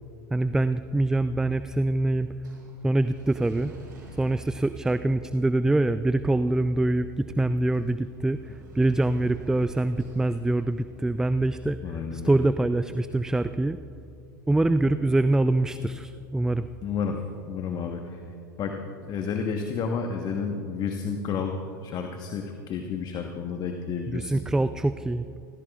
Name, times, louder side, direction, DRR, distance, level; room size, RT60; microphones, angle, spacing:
voice 1, 0.3-2.3 2.8-3.7 4.2-13.8 14.5-16.7 24.1-25.3, right 2 dB, 5° right, 12 dB, 0.3 m, -24 dB
sound 1, 1.3-14.4, right 1 dB, 75° right, 4.4 m, -52 dB
voice 2, 11.8-12.5 16.8-18.2 18.6-21.6 21.8-24.3, left 6 dB, 40° left, 4 dB, 1.2 m, -31 dB
28.5 x 15.5 x 2.4 m, 2.7 s
hypercardioid pair, 85°, 11 cm